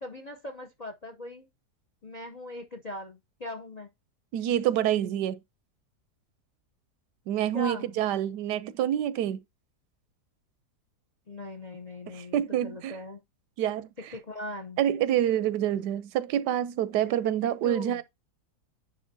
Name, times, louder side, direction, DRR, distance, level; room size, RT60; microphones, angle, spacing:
voice 1, 0.0-1.5 2.0-3.9 7.5-8.0 11.3-13.2 14.1-14.8 17.6-18.0, left 1 dB, 50° left, 0.5 m, -40 dB
voice 2, 4.3-5.4 7.3-9.4 12.1-12.9 13.6-13.9 14.8-18.0, right 11 dB, 90° right, 1.2 m, -27 dB
10.0 x 3.8 x 2.7 m
omnidirectional pair, 1.8 m